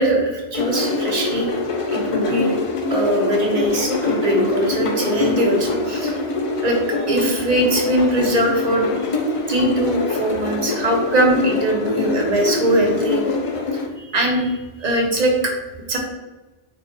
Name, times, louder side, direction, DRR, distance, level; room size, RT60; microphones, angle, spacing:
voice 1, 0.0-1.5 1.9-2.5 2.9-6.2 6.6-8.9 9.5-13.2 13.7-13.8 14.1-15.3 15.9-16.0, right 1 dB, 40° right, 1 dB, 0.9 m, -21 dB
sound 1, 0.5-13.9, left 3 dB, 50° left, 0.4 m, -24 dB
3.8 x 3.1 x 4.3 m, 1.1 s
omnidirectional pair, 1.1 m